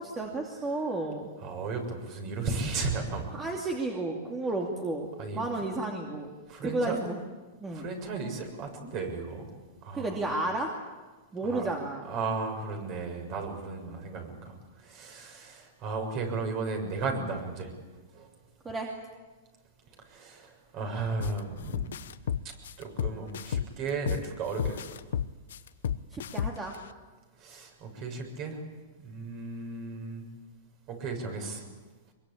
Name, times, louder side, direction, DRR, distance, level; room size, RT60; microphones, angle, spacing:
voice 1, 0.0-1.3 3.3-5.1 5.3-6.3 6.6-7.2 7.6-7.9 9.9-10.7 11.3-12.0 18.6-18.9 26.1-26.7, right 2 dB, 15° right, 1 dB, 2.6 m, -32 dB
voice 2, 1.4-3.3 5.2-5.7 6.5-7.0 7.7-10.2 11.4-11.7 12.0-17.7 18.1-18.3 20.1-21.9 22.4-24.8 27.4-28.6 29.0-30.3 30.9-31.7, right 4 dB, 40° right, 4 dB, 6.9 m, -35 dB
sound 1, 21.2-21.4 21.7-24.3 24.6-26.8, left 9 dB, 80° left, 1.0 m, -31 dB
24.5 x 23.0 x 8.7 m, 1.3 s
hypercardioid pair, 145°, 0 cm